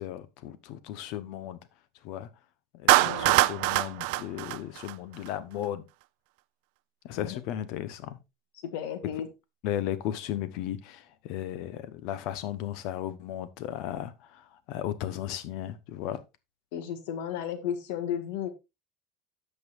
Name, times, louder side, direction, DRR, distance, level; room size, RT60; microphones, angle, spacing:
voice 1, 0.0-1.6 2.0-2.3 2.7-5.8 7.0-8.2 9.6-16.2, left 12 dB, 55° left, 0.9 m, -35 dB
Clapping, 2.9-5.3, right 21 dB, 70° right, 0.3 m, -23 dB
voice 2, 3.0-3.5 7.2-7.4 8.7-9.3 16.7-18.5, left 9 dB, 90° left, 1.5 m, -34 dB
14.5 x 5.4 x 2.5 m
cardioid pair, 170°, 0 cm